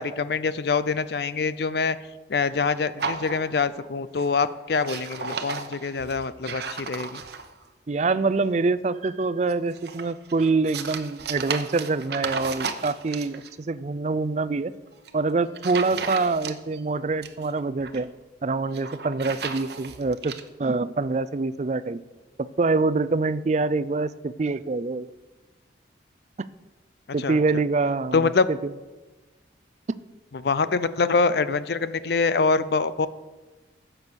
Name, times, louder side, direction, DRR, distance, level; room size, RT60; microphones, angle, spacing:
voice 1, 0.0-2.0 2.3-7.2 27.2-27.4 28.1-28.5 30.3-33.1, left 4 dB, 55° left, 14 dB, 0.5 m, -24 dB
sound 1, 3.0-3.9 4.2-4.5 4.7-7.6 9.5-13.5 14.9-15.1 15.6-16.8 17.1-18.0 18.6-20.4, right 5 dB, 60° right, 0.9 m, -34 dB
voice 2, 7.9-14.7 15.1-18.1 18.4-20.3 20.6-22.0 22.6-25.1 27.1-28.6, right 3 dB, 35° right, 16 dB, 0.4 m, -25 dB
15.0 x 6.8 x 6.2 m, 1.2 s
head